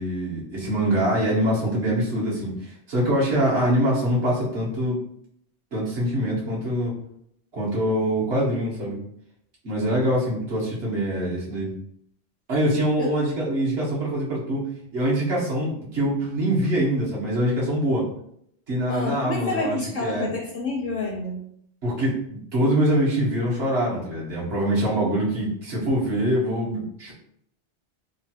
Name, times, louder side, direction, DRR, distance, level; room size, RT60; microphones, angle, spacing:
voice 1, 0.0-5.0 5.7-6.9 7.5-9.0 9.6-11.7 12.5-14.6 14.9-18.0 18.7-20.3 21.8-27.1, right 1 dB, 70° right, -6 dB, 1.2 m, -24 dB
voice 2, 18.9-21.4, left 2 dB, 60° left, 0 dB, 0.6 m, -28 dB
3.1 x 2.2 x 2.8 m, 0.71 s
omnidirectional pair, 1.1 m